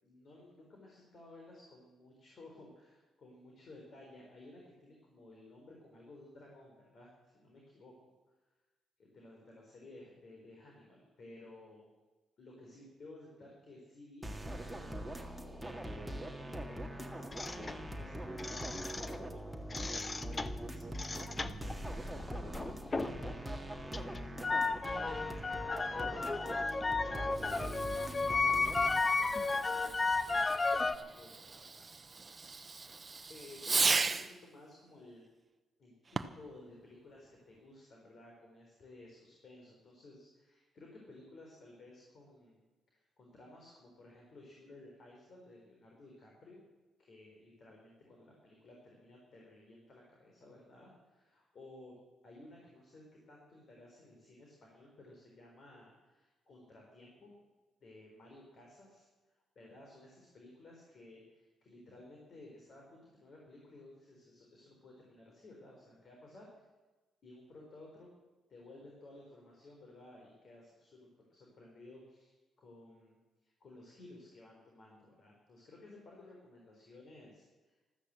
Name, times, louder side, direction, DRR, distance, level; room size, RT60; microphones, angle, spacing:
voice 1, 0.0-7.9 9.1-11.8 12.4-15.6 16.0-31.9 32.6-33.0 33.3-35.2 35.8-42.7 43.2-46.6 47.0-57.3 57.8-66.5 67.2-68.1 68.5-77.8, left 2 dB, 50° left, -1 dB, 4.2 m, -56 dB
sound 1, 14.2-29.0, right 1 dB, 5° right, 1.8 m, -43 dB
sound 2, 17.3-19.3 19.6-23.3 23.6-31.0, left 3 dB, 25° left, 0.8 m, -34 dB
Fireworks, 27.3-34.4 36.0-36.5, right 4 dB, 30° right, 0.8 m, -37 dB
13.5 x 13.5 x 7.6 m, 1.2 s
cardioid pair, 90°, 0 cm